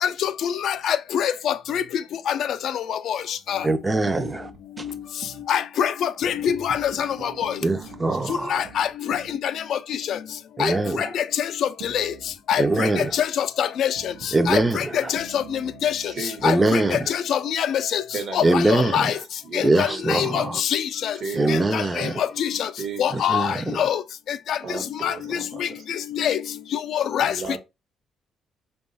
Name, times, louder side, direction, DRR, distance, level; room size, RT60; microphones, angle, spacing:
voice 1, 0.0-3.7 5.5-7.6 8.5-10.2 10.6-12.1 12.5-18.0 18.3-19.2 19.5-21.1 21.5-22.7 23.0-24.0 24.3-24.6 25.0-26.4 26.7-27.3, left 9 dB, 70° left, 0.3 m, -25 dB
voice 2, 3.6-4.5 4.8-4.9 7.6-8.5 10.6-11.1 12.6-13.1 14.3-15.1 16.4-17.1 18.4-19.1 19.6-20.6 21.3-22.2 23.1-23.8, right 2 dB, 20° right, 0.4 m, -22 dB
sound 1, 4.1-5.5 6.2-9.4 11.8-13.2 14.0-17.1, right 6 dB, 80° right, 0.6 m, -44 dB
voice 3, 16.0-17.0 18.1-18.9 19.4-20.0 21.2-21.9 22.8-23.2 24.6-25.8 27.2-27.6, right 4 dB, 60° right, 1.0 m, -35 dB
3.0 x 2.3 x 3.9 m
cardioid pair, 90°, 0 cm